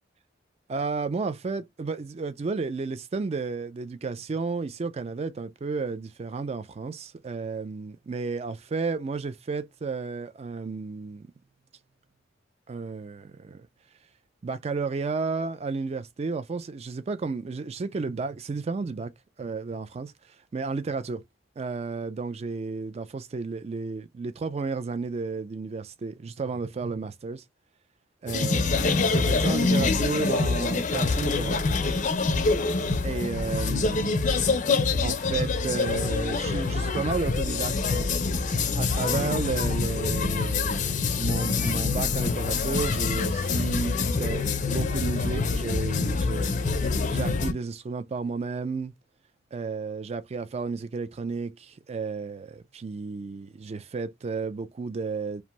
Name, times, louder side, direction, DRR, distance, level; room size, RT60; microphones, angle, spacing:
voice 1, 0.7-11.3 12.7-13.7 14.4-19.1 19.4-20.1 20.5-21.2 21.6-27.4 28.2-31.6 33.0-34.2 35.0-38.1 38.8-46.6 47.1-48.9 49.5-55.4, right 4 dB, 35° right, 0.3 m, -32 dB
sound 1, 28.3-47.5, left 4 dB, 40° left, 0.5 m, -25 dB
2.5 x 2.2 x 2.9 m
head